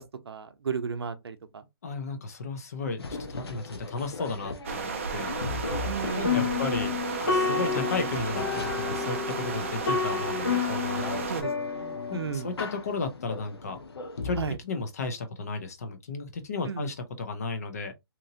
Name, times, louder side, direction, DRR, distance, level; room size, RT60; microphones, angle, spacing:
voice 1, 0.0-1.6 5.9-6.6 11.3-12.5 14.4-14.6 16.7-16.9, right 6 dB, 80° right, 0.6 m, -34 dB
voice 2, 1.8-5.4 6.1-6.9 7.3-11.2 12.1-13.8 14.2-17.9, left 3 dB, 40° left, 0.6 m, -34 dB
sound 1, 3.0-14.6, left 3 dB, 80° left, 0.7 m, -39 dB
sound 2, 4.6-11.4, right 5 dB, 30° right, 0.4 m, -34 dB
sound 3, 6.0-12.6, left 5 dB, 55° left, 1.0 m, -30 dB
2.9 x 2.5 x 2.7 m
hypercardioid pair, 170°, 13 cm